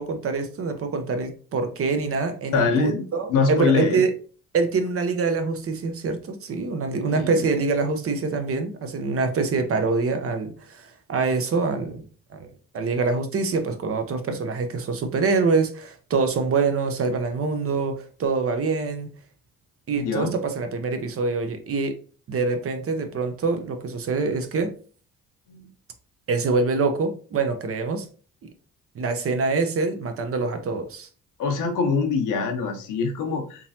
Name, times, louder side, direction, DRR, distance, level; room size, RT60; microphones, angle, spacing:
voice 1, 0.0-4.1 4.5-12.1 12.3-19.1 19.9-22.0 22.3-24.7 26.3-28.1 28.9-31.1, right 4 dB, 50° right, 7 dB, 0.7 m, -25 dB
voice 2, 2.5-4.0 7.1-7.4 20.0-20.3 25.5-25.6 31.4-33.7, left 5 dB, 85° left, 5 dB, 0.9 m, -24 dB
3.7 x 2.9 x 2.7 m, 0.39 s
cardioid pair, 90°, 30 cm